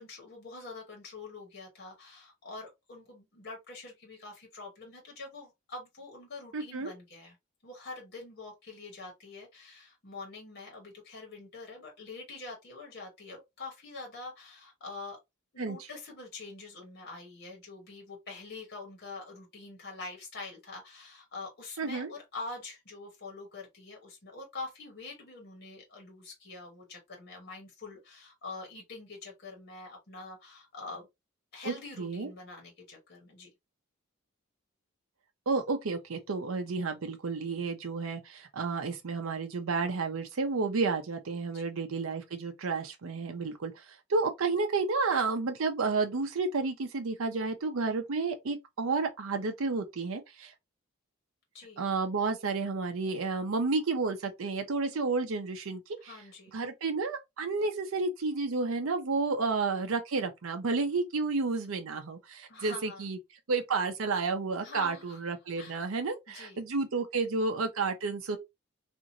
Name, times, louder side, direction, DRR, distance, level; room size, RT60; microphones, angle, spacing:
voice 1, 0.0-7.4 7.6-15.2 15.5-31.1 31.5-33.5 41.5-41.9 51.5-51.8 56.0-56.5 62.5-63.1 64.6-65.2 65.6-65.8 66.3-66.6, left 3 dB, 50° left, 1.2 m, -45 dB
voice 2, 6.5-6.9 15.6-15.8 21.8-22.1 31.6-32.3 35.5-43.8 44.1-50.5 51.8-56.1 56.5-63.2 63.5-68.4, right 4 dB, 70° right, 0.5 m, -31 dB
2.8 x 2.5 x 2.5 m
head